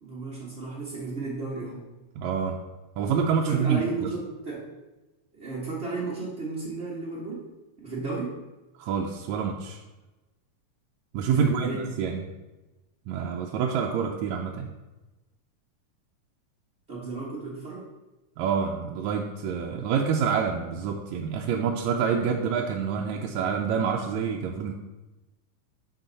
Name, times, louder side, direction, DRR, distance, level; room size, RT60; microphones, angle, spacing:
voice 1, 0.0-1.9 3.4-4.7 5.3-7.5 7.8-8.4 11.3-11.8 16.9-17.9, right 3 dB, 55° right, -6 dB, 0.7 m, -33 dB
voice 2, 2.2-2.6 3.0-4.1 8.8-9.8 11.1-12.2 13.1-14.7 18.4-24.7, right 6 dB, 80° right, 0 dB, 1.7 m, -27 dB
12.0 x 4.5 x 4.0 m, 1.1 s
omnidirectional pair, 3.6 m